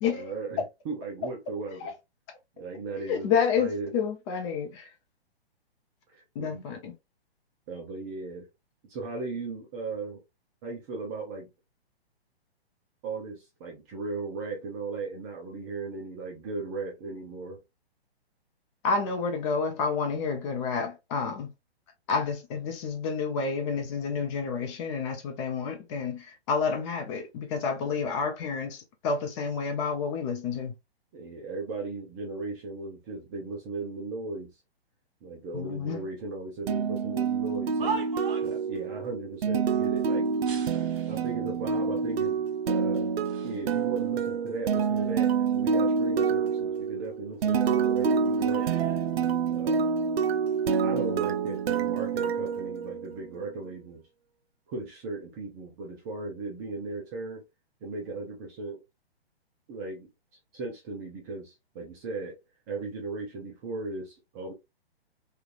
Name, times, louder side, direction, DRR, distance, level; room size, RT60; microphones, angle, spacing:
voice 1, 0.0-1.9 2.6-3.9 6.1-6.7 7.7-8.5 8.8-10.2 10.6-11.5 13.0-17.6 31.1-34.5 35.2-38.0 38.4-40.3 40.7-43.2 43.4-48.7 49.5-49.9 50.8-54.0 54.7-57.4 57.8-58.8 59.7-60.1 60.5-62.4 62.7-64.5, right 3 dB, 15° right, 0.4 m, -37 dB
voice 2, 3.1-4.9 6.4-6.9 18.8-21.5 22.1-30.7 35.5-36.0, left 5 dB, 30° left, 0.7 m, -29 dB
sound 1, 36.7-53.4, right 6 dB, 70° right, 0.5 m, -27 dB
sound 2, 37.4-38.7 40.4-41.3 42.1-42.2 42.9-43.6 44.0-45.5 45.9-47.5 47.8-49.9 50.7-51.0, right 5 dB, 55° right, 1.0 m, -41 dB
3.2 x 2.4 x 2.4 m
hypercardioid pair, 140°, 32 cm